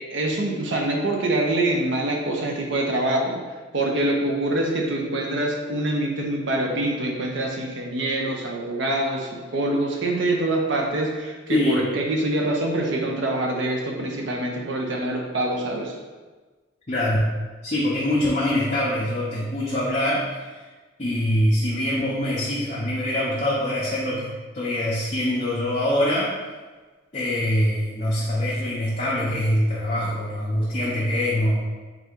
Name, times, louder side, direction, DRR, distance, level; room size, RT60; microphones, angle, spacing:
voice 1, 0.1-3.4 3.7-15.9, right 1 dB, 65° right, 0 dB, 0.7 m, -25 dB
voice 2, 11.5-11.8 16.9-17.3 17.6-20.5 21.0-26.3 27.1-31.6, left 1 dB, 35° left, -7 dB, 0.5 m, -24 dB
3.6 x 2.8 x 3.5 m, 1.3 s
head